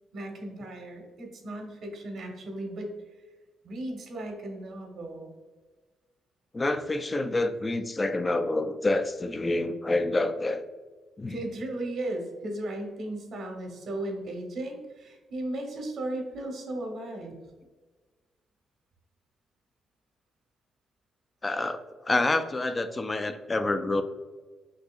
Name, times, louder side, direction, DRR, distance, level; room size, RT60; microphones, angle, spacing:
voice 1, 0.1-2.9 3.6-5.3 11.3-17.4, right 1 dB, 65° right, 2 dB, 1.1 m, -36 dB
voice 2, 6.5-10.6 11.2-11.4 21.4-24.0, left 2 dB, 25° left, 9 dB, 0.4 m, -27 dB
6.3 x 2.8 x 2.4 m, 1.3 s
cardioid pair, 90°, 0 cm